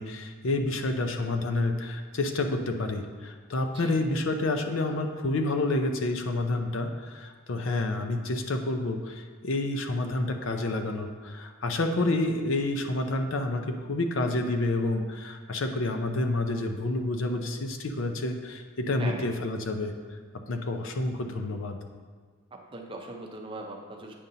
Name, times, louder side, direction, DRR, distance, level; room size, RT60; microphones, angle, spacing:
voice 1, 0.0-19.9 20.5-21.8, left 2 dB, 65° left, 5 dB, 0.6 m, -29 dB
voice 2, 22.5-24.1, right 2 dB, 25° right, 1 dB, 0.6 m, -39 dB
8.5 x 5.3 x 2.7 m, 1.5 s
head